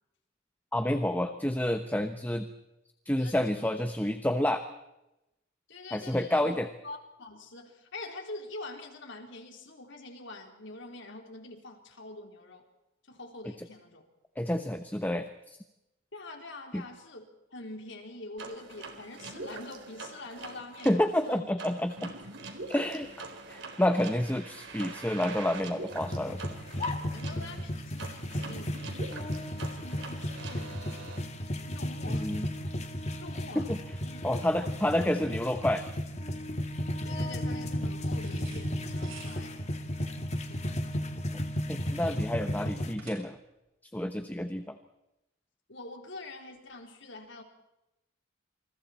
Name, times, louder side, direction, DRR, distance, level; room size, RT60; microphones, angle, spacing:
voice 1, 0.7-2.5 3.0-4.6 5.9-6.7 14.4-15.3 16.7-16.8 20.8-22.1 22.7-23.1 23.5-26.5 32.1-32.5 33.5-33.8 34.2-35.8 41.7-43.4 43.9-44.8, left 1 dB, 10° left, 7 dB, 1.1 m, -29 dB
voice 2, 3.2-3.7 5.7-6.6 6.8-12.6 13.1-14.1 16.1-21.5 27.1-28.8 29.7-30.8 31.6-32.4 33.2-33.7 34.0-34.6 37.0-39.8 40.5-41.5 42.2-42.3 45.7-47.4, left 2 dB, 65° left, 3 dB, 4.0 m, -45 dB
sound 1, 18.4-31.2, right 3 dB, 65° right, 3.9 m, -44 dB
sound 2, 25.9-42.9, left 1 dB, 35° left, 2.3 m, -34 dB
sound 3, 38.2-43.6, right 6 dB, 85° right, 7.7 m, -54 dB
28.5 x 27.5 x 4.4 m, 0.90 s
head